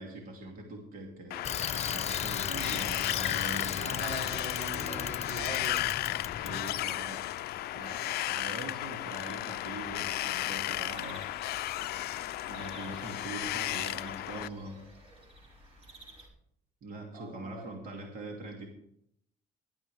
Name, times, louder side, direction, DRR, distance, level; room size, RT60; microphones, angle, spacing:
voice 1, 0.0-4.2 6.4-7.3 7.7-11.3 12.4-14.9 16.8-18.7, right 2 dB, 55° right, 0 dB, 2.8 m, -43 dB
Wind, 1.3-14.5, left 15 dB, 70° left, 0.5 m, -34 dB
Bicycle, 1.4-6.9, left 8 dB, 40° left, 0.9 m, -36 dB
voice 2, 3.8-5.9 17.1-17.7, right 3 dB, 75° right, 1 dB, 3.7 m, -41 dB
sound 1, 9.8-16.3, right 1 dB, 35° right, 5.2 m, -53 dB
19.0 x 12.5 x 3.5 m, 0.72 s
cardioid pair, 110°, 17 cm